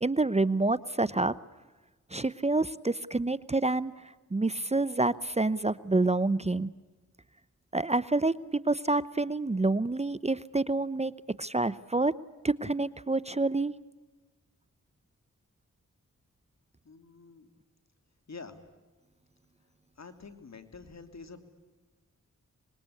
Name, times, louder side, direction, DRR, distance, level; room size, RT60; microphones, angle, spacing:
voice 1, 0.0-1.3 2.1-3.9 4.3-6.7 7.7-8.3 8.7-11.1 11.4-12.1 12.4-13.7, right 2 dB, 20° right, 18 dB, 0.7 m, -27 dB
voice 2, 16.8-17.5 18.3-18.6 20.0-21.4, left 4 dB, 60° left, 9 dB, 2.9 m, -47 dB
25.5 x 21.0 x 8.4 m, 1.3 s
cardioid pair, 45°, 31 cm